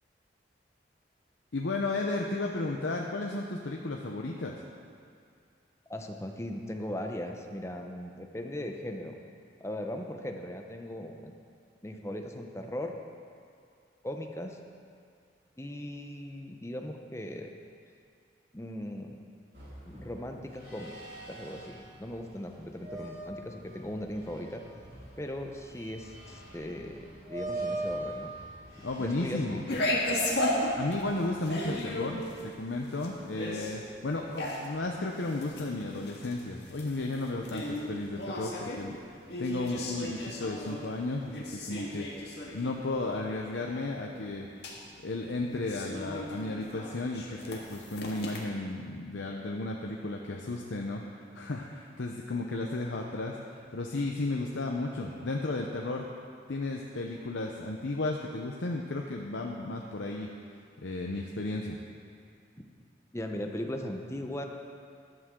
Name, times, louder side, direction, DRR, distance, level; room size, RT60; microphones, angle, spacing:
voice 1, 1.5-4.6 28.8-29.6 30.7-44.5 45.0-56.1 56.5-60.3 60.8-61.8, left 2 dB, 85° left, 0 dB, 0.8 m, -34 dB
voice 2, 5.9-9.2 9.6-11.3 11.8-12.9 14.0-14.6 15.6-17.5 18.5-19.2 19.8-20.9 21.3-24.6 25.2-28.3 28.7-29.6 63.1-64.5, left 1 dB, 15° left, 3 dB, 0.7 m, -38 dB
sound 1, 19.5-32.4, right 2 dB, 55° right, 3.1 m, -43 dB
sound 2, 29.7-48.4, left 1 dB, 65° left, 1.8 m, -36 dB
13.5 x 11.0 x 3.8 m, 2.3 s
head